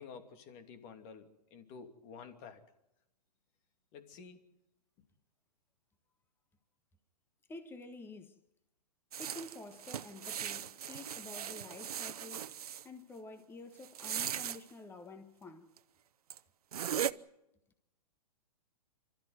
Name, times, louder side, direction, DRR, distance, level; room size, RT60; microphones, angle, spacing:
voice 1, 0.0-2.6 3.9-4.4, left 6 dB, 35° left, 2.8 m, -51 dB
voice 2, 7.5-8.4 9.2-12.4 12.8-15.7, left 2 dB, 10° left, 1.5 m, -49 dB
sound 1, 9.1-12.8 13.8-14.6 15.8-15.9 16.3-16.4 16.7-17.1, right 9 dB, 65° right, 0.9 m, -38 dB
27.5 x 13.5 x 9.5 m
hypercardioid pair, 125°, 20 cm